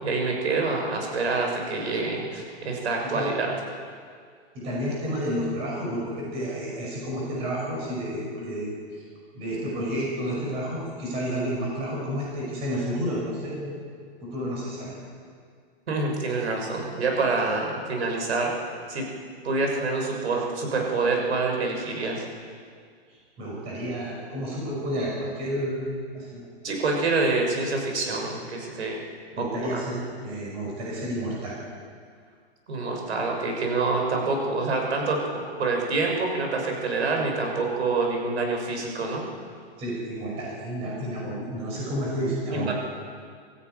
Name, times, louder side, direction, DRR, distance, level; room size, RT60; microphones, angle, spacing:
voice 1, 0.0-3.5 15.9-18.5 18.9-19.1 19.4-22.2 26.6-28.9 29.4-29.8 32.7-39.2 42.5-42.7, right 3 dB, 80° right, 1 dB, 6.5 m, -26 dB
voice 2, 4.5-9.0 9.3-13.8 14.2-15.0 23.1-25.9 26.1-26.5 28.1-28.2 29.4-31.6 39.8-42.7, equal, 20° right, -3 dB, 5.4 m, -31 dB
23.0 x 14.5 x 9.5 m, 2.1 s
hypercardioid pair, 180°, 33 cm